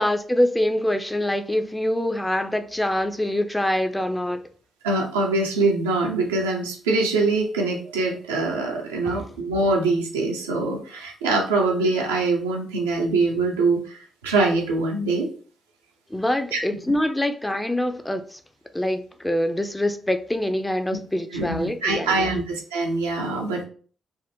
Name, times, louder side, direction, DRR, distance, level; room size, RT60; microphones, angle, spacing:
voice 1, 0.0-4.4 9.0-9.3 16.1-18.4 18.7-22.4, left 1 dB, 10° left, 0.4 m, -25 dB
voice 2, 4.8-15.3 16.5-16.6 21.3-23.6, right 3 dB, 90° right, 0.5 m, -23 dB
3.4 x 2.1 x 2.6 m
hypercardioid pair, 40°, 0 cm